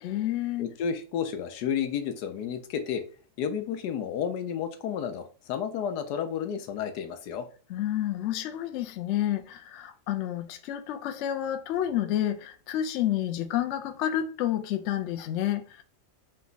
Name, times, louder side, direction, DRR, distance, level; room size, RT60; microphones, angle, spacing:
voice 1, 0.0-0.8 7.7-15.8, left 12 dB, 70° left, 0.7 m, -30 dB
voice 2, 0.6-3.0 3.4-7.5, left 8 dB, 85° left, 1.2 m, -31 dB
4.0 x 2.2 x 3.9 m
omnidirectional pair, 1.7 m